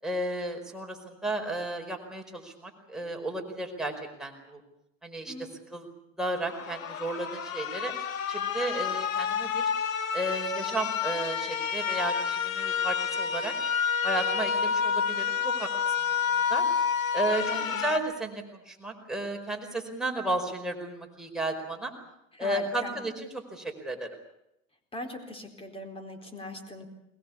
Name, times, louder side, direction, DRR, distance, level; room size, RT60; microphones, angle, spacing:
voice 1, 0.0-4.6 5.0-5.9 6.2-7.9 8.3-9.7 10.1-13.5 14.0-15.7 16.5-16.6 17.1-21.9 22.4-24.1, right 1 dB, ahead, 1 dB, 4.8 m, -33 dB
sound 1, 6.4-18.0, left 7 dB, 85° left, 1.7 m, -29 dB
voice 2, 17.5-17.8 22.4-23.0 24.9-26.9, left 1 dB, 15° left, 6 dB, 4.3 m, -40 dB
21.5 x 21.0 x 8.6 m, 0.82 s
hypercardioid pair, 105°, 39 cm